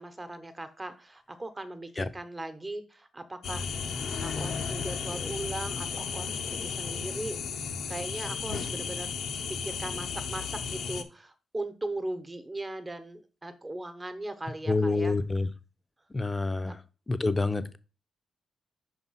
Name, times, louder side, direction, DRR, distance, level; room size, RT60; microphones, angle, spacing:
voice 1, 0.0-9.1 9.5-15.2 16.7-16.8, right 2 dB, 20° right, 9 dB, 1.1 m, -39 dB
sound 1, 3.4-11.0, left 6 dB, 75° left, 0.7 m, -34 dB
voice 2, 14.7-15.5 16.1-16.7 17.1-17.8, left 3 dB, 25° left, 11 dB, 0.7 m, -27 dB
5.3 x 4.2 x 5.7 m, 0.34 s
cardioid pair, 65°, 0 cm